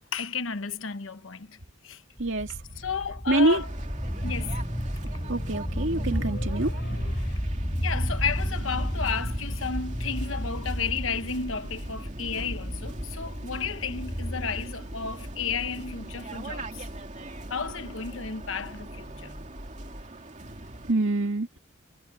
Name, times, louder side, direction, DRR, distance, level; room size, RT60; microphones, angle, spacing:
voice 1, 0.1-1.6 1.8-2.0 2.8-3.7 4.2-4.6 7.2-7.4 7.8-16.8 17.5-19.3, left 5 dB, 85° left, 1.1 m, -33 dB
sound 1, 2.2-20.0, equal, 15° left, 7.7 m, -33 dB
voice 2, 2.2-2.5 3.3-3.6 5.3-6.7 20.9-21.6, right 2 dB, 70° right, 2.2 m, -25 dB
Waves surf, 3.5-20.9, right 1 dB, 35° right, 2.6 m, -41 dB
Motorcycle, 4.5-7.8, left 1 dB, 60° left, 4.3 m, -46 dB
head